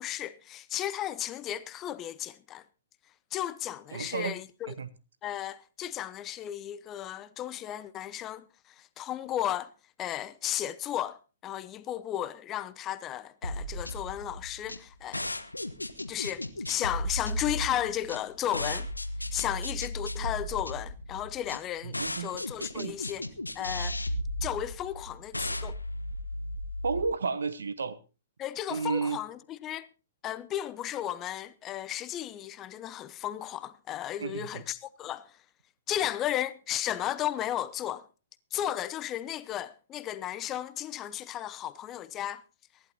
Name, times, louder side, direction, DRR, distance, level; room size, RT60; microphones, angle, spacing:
voice 1, 0.0-2.6 3.3-4.7 5.2-9.7 10.0-15.3 16.1-18.9 19.3-23.2 23.5-24.0 24.4-25.8 28.4-29.9 30.2-35.4 35.9-38.1 38.5-42.4, left 12 dB, 25° left, 0.7 m, -34 dB
voice 2, 3.9-4.4 4.7-4.9 21.8-22.3 22.7-23.0 26.8-28.0 28.7-29.2 34.2-34.6, right 5 dB, 70° right, 1.1 m, -32 dB
sound 1, 13.4-27.0, left 1 dB, 90° left, 1.1 m, -35 dB
24.0 x 11.0 x 2.8 m
figure-of-eight pair, 115°, 0 cm